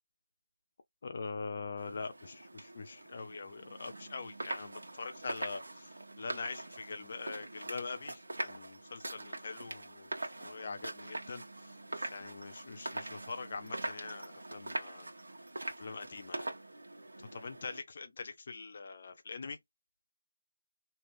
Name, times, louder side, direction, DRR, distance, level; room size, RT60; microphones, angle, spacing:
voice 1, 1.0-10.1 10.4-15.1 15.8-16.5 17.3-19.6, left 4 dB, 30° left, 0.6 m, -43 dB
sound 1, 1.8-17.8, right 2 dB, 70° right, 1.6 m, -43 dB
3.2 x 2.9 x 2.5 m
figure-of-eight pair, 175°, 0 cm